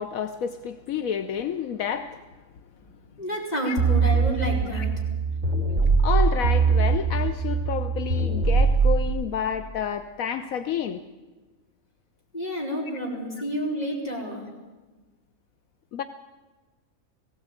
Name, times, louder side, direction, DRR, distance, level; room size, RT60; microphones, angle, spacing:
voice 1, 0.0-2.2 3.7-3.8 4.7-4.8 6.0-11.0 15.9-16.0, left 8 dB, 75° left, 9 dB, 1.2 m, -29 dB
voice 2, 3.2-4.9 12.3-14.4, equal, 30° left, -2 dB, 4.7 m, -29 dB
sound 1, 3.8-9.1, right 4 dB, 55° right, 3.0 m, -22 dB
19.0 x 16.5 x 9.0 m, 1.3 s
omnidirectional pair, 1.5 m